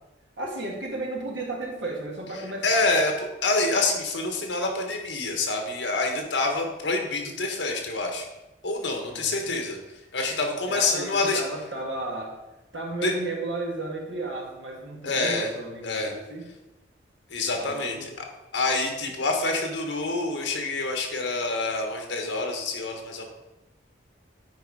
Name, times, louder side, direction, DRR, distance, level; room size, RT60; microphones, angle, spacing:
voice 1, 0.4-3.0 9.0-9.6 10.7-12.4 12.7-16.4 17.6-18.1, right 2 dB, 85° right, -1 dB, 2.0 m, -34 dB
voice 2, 2.6-8.2 8.6-9.8 10.1-11.4 13.0-13.1 15.0-15.5 15.8-16.1 17.3-18.2 18.5-23.3, left 3 dB, 80° left, 3 dB, 1.4 m, -27 dB
9.3 x 4.6 x 4.8 m, 1.0 s
head